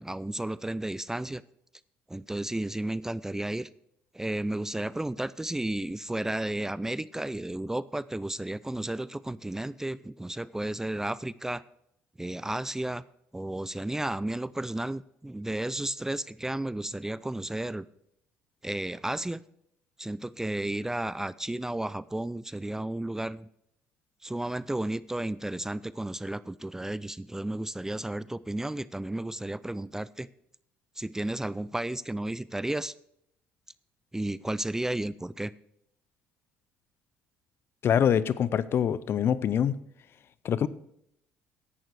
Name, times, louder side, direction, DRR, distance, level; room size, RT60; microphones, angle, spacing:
voice 1, 0.0-1.4 2.1-3.7 4.1-11.6 12.2-13.0 13.3-17.9 18.6-19.4 20.0-23.5 24.2-30.3 31.0-32.9 34.1-35.5, right 1 dB, 10° right, 19 dB, 0.4 m, -33 dB
voice 2, 37.8-39.7 40.4-40.7, left 8 dB, 50° left, 18 dB, 0.6 m, -24 dB
11.0 x 9.1 x 4.7 m, 0.74 s
supercardioid pair, 70°, 5 cm